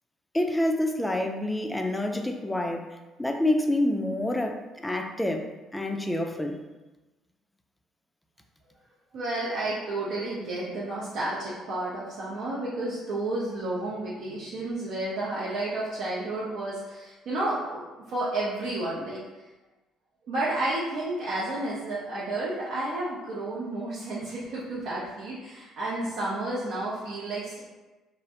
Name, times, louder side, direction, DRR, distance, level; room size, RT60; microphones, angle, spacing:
voice 1, 0.3-5.5 5.7-6.6, left 1 dB, 10° left, 4 dB, 0.3 m, -27 dB
voice 2, 9.1-19.2 20.2-27.6, right 2 dB, 70° right, -7 dB, 0.5 m, -31 dB
2.4 x 2.0 x 2.7 m, 1.1 s
supercardioid pair, 65°, 0 cm